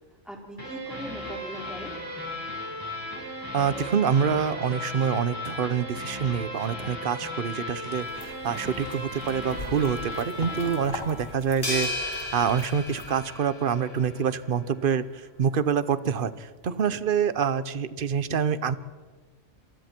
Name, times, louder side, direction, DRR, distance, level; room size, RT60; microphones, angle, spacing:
voice 1, 0.2-1.9 10.4-10.7, equal, ahead, 0 dB, 3.7 m, -40 dB
sound 1, 0.6-11.8, left 1 dB, 15° right, 7.8 m, -36 dB
voice 2, 3.5-15.0 15.4-18.8, right 7 dB, 50° right, 15 dB, 0.9 m, -26 dB
sound 2, 7.9-13.2, left 1 dB, 80° left, 3.4 m, -42 dB
sound 3, 11.6-14.1, left 2 dB, 20° left, 7.3 m, -33 dB
27.0 x 24.0 x 4.5 m, 1.4 s
omnidirectional pair, 1.3 m